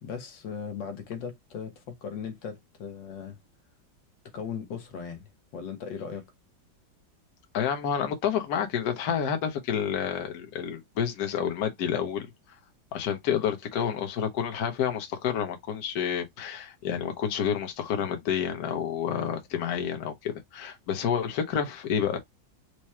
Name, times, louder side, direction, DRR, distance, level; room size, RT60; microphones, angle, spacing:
voice 1, 0.0-3.4 4.3-6.3, left 6 dB, 70° left, 1.7 m, -38 dB
voice 2, 7.5-12.3 12.9-22.2, left 8 dB, 55° left, 1.4 m, -29 dB
4.9 x 2.2 x 4.2 m
omnidirectional pair, 2.1 m